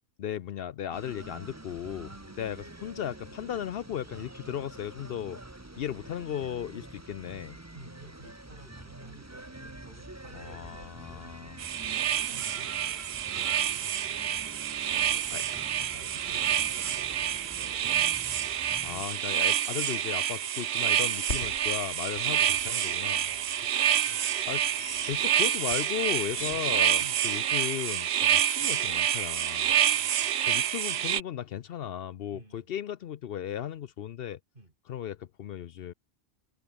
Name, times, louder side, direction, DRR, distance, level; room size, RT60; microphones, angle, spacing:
voice 1, 0.2-2.1 2.4-5.4 5.8-7.6 10.3-11.6 14.9-15.4 18.8-23.2 24.5-24.6 25.1-29.7 30.5-34.4 34.9-35.9, left 10 dB, 65° left, 0.8 m, -36 dB
sound 1, 0.9-19.0, right 2 dB, 15° right, 1.3 m, -47 dB
voice 2, 2.1-2.4 7.7-11.3 11.8-15.5 15.8-18.6 23.2-24.4 26.4-26.7 27.0-27.3 28.6-28.8 29.9-30.5 32.3-32.8 34.5-34.7, right 1 dB, 50° right, 5.1 m, -53 dB
sound 2, 11.6-31.2, right 10 dB, 75° right, 1.0 m, -28 dB
sound 3, 21.3-26.6, left 3 dB, 85° left, 3.7 m, -43 dB
omnidirectional pair, 1.1 m